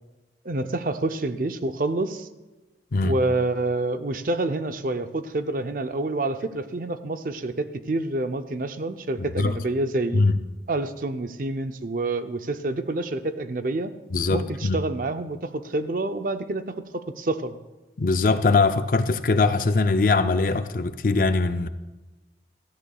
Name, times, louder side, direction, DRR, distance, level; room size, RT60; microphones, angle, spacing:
voice 1, 0.4-2.3 3.0-10.3 10.7-13.9 14.3-17.6, right 2 dB, 50° right, 0.6 m, -28 dB
voice 2, 14.1-14.8 18.0-21.7, left 3 dB, 50° left, 0.5 m, -21 dB
16.5 x 13.5 x 2.3 m
head